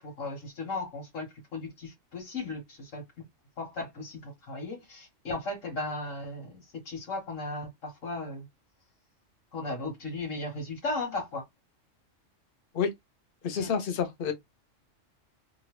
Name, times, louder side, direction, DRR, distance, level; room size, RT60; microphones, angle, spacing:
voice 1, 0.0-3.3 3.6-8.5 9.5-11.4 13.6-13.7, left 2 dB, 90° left, 1.6 m, -36 dB
voice 2, 13.4-14.3, left 6 dB, 50° left, 0.9 m, -28 dB
2.9 x 2.5 x 3.0 m
omnidirectional pair, 1.3 m